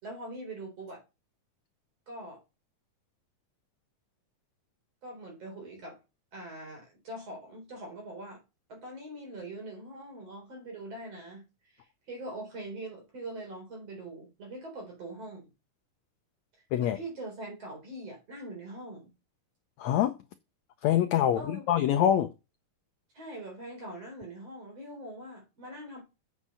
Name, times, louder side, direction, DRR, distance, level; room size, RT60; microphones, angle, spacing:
voice 1, 0.0-1.0 2.1-2.4 5.0-6.0 6.3-8.4 8.7-15.5 16.5-19.1 21.3-21.7 23.1-26.0, right 1 dB, 45° right, 4.9 m, -43 dB
voice 2, 19.8-20.2 20.8-22.3, left 10 dB, 80° left, 1.6 m, -25 dB
8.0 x 7.3 x 5.6 m
omnidirectional pair, 4.0 m